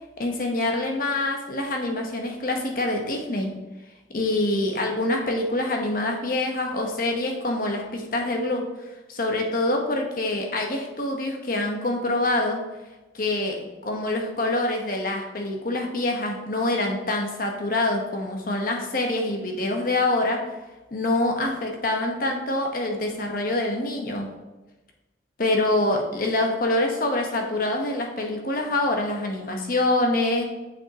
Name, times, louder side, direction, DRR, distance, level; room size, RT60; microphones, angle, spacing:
voice 1, 0.2-3.6 4.1-8.7 9.1-12.6 13.1-20.4 20.9-24.3 25.4-30.4, left 2 dB, 50° left, 2 dB, 1.0 m, -25 dB
7.1 x 6.1 x 2.9 m, 1.1 s
head